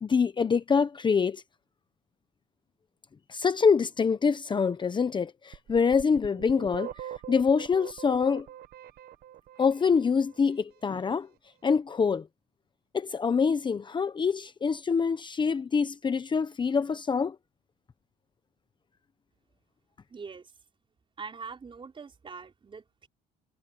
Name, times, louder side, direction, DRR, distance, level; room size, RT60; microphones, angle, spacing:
voice 1, 0.0-1.4 3.3-6.9 7.3-8.5 9.6-11.3 11.6-12.3 12.9-17.4, left 5 dB, 25° left, 0.9 m, -25 dB
sound 1, 5.5-10.4, right 11 dB, 65° right, 1.4 m, -43 dB
voice 2, 20.1-20.5 21.2-23.1, right 5 dB, 30° right, 5.3 m, -43 dB
cardioid pair, 110°, 17 cm